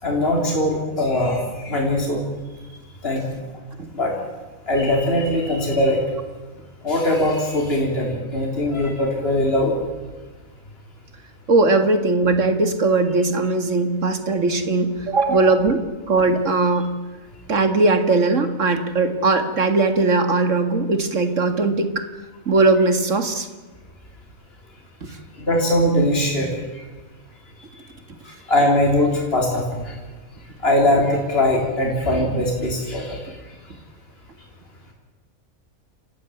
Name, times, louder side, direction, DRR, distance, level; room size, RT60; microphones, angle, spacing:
voice 1, 0.0-2.2 3.0-3.2 3.9-4.1 4.7-6.0 6.8-9.8 15.3-15.4 25.4-26.8 28.5-29.9 30.6-33.2, left 1 dB, 45° left, -1 dB, 4.1 m, -21 dB
voice 2, 11.5-15.8 16.1-16.9 17.5-22.1 22.5-23.5 25.0-25.1, right 3 dB, 65° right, 8 dB, 2.3 m, -19 dB
27.5 x 15.5 x 9.4 m, 1.2 s
omnidirectional pair, 1.4 m